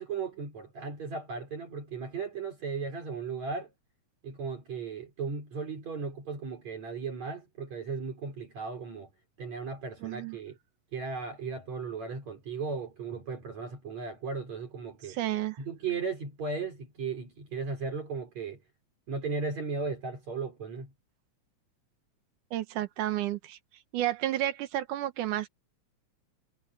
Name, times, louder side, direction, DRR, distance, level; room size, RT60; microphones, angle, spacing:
voice 1, 0.0-3.7 4.2-9.1 9.4-10.6 10.9-15.2 15.6-18.6 19.1-20.9, right 4 dB, 60° right, 6.2 m, -36 dB
voice 2, 10.0-10.4 15.0-15.6 22.5-23.6 23.9-25.5, right 13 dB, 90° right, 2.6 m, -31 dB
omnidirectional pair, 3.5 m